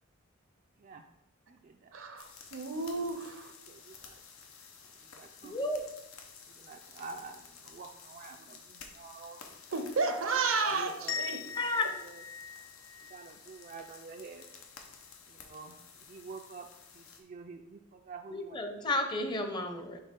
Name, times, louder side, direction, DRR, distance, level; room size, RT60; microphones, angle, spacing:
voice 1, 0.8-1.1 1.5-2.0 2.9-3.1 3.7-4.2 4.9-5.6 6.5-9.6 10.6-11.2 11.6-12.2 13.0-14.5 15.3-18.9, right 4 dB, 40° right, 3 dB, 0.4 m, -49 dB
voice 2, 1.9-3.5 9.7-11.4, right 4 dB, 70° right, 8 dB, 0.7 m, -32 dB
sound 1, 2.2-17.2, left 6 dB, 90° left, 0.9 m, -53 dB
voice 3, 5.4-5.8 11.6-11.9 18.3-20.0, left 2 dB, 20° left, 5 dB, 0.7 m, -32 dB
sound 2, 11.1-13.9, left 6 dB, 65° left, 0.7 m, -40 dB
6.5 x 3.2 x 5.2 m, 0.89 s
head